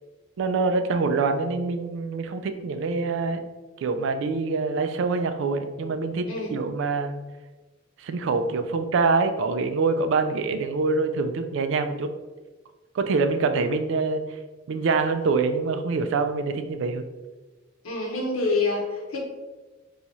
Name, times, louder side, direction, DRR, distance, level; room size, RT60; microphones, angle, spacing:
voice 1, 0.4-3.4 3.8-7.2 8.0-12.1 12.9-14.4 14.7-17.0, right 4 dB, 60° right, 8 dB, 0.3 m, -25 dB
voice 2, 17.8-19.2, left 3 dB, 85° left, -2 dB, 0.8 m, -26 dB
3.0 x 2.3 x 4.0 m, 1.2 s
head